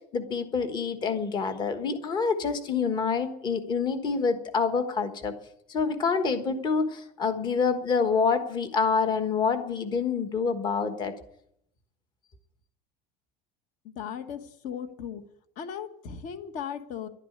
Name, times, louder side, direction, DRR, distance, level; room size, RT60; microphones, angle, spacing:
voice 1, 0.1-5.3 5.7-11.1, left 5 dB, 25° left, 8 dB, 1.3 m, -27 dB
voice 2, 13.8-15.2 15.6-17.1, left 8 dB, 45° left, 9 dB, 1.4 m, -37 dB
12.0 x 9.9 x 9.5 m, 0.73 s
cardioid pair, 180°, 19 cm